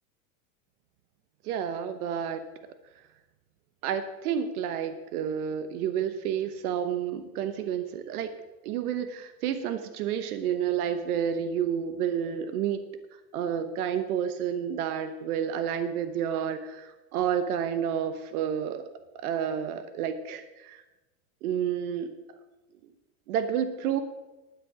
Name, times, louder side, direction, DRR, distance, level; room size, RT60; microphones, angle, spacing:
voice 1, 1.4-2.4 3.8-8.3 8.6-12.8 13.3-18.9 19.1-20.8 21.4-22.1 23.3-24.0, right 8 dB, 80° right, 10 dB, 1.1 m, -30 dB
11.0 x 9.5 x 4.9 m, 1.1 s
supercardioid pair, 130°, 44 cm